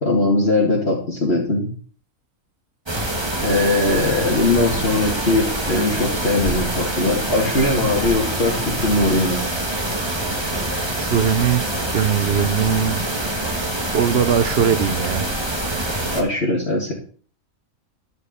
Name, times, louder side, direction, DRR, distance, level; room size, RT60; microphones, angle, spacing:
voice 1, 0.0-1.7 3.4-9.4 16.1-16.9, left 2 dB, 45° left, 2.6 m, -20 dB
sound 1, 2.9-16.2, right 1 dB, 20° right, 1.8 m, -25 dB
voice 2, 11.0-13.0 13.9-15.2, right 8 dB, 55° right, 0.8 m, -20 dB
13.0 x 5.2 x 7.0 m
omnidirectional pair, 1.5 m